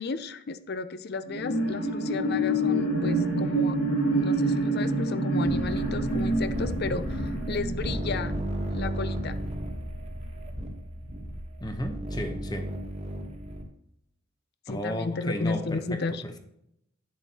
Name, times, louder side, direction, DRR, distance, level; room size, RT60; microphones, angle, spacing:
voice 1, 0.0-3.8 4.1-7.2 7.5-8.4 8.7-9.4 14.7-16.2, left 4 dB, 50° left, 13 dB, 0.5 m, -33 dB
sound 1, 1.2-9.0 9.5-9.6, right 1 dB, 90° left, 2.9 m, -27 dB
sound 2, 5.4-13.6, equal, 30° right, 1.3 m, -34 dB
voice 2, 11.6-12.7 14.7-16.4, left 1 dB, 20° left, 6 dB, 0.8 m, -34 dB
10.0 x 7.5 x 2.9 m, 0.78 s
head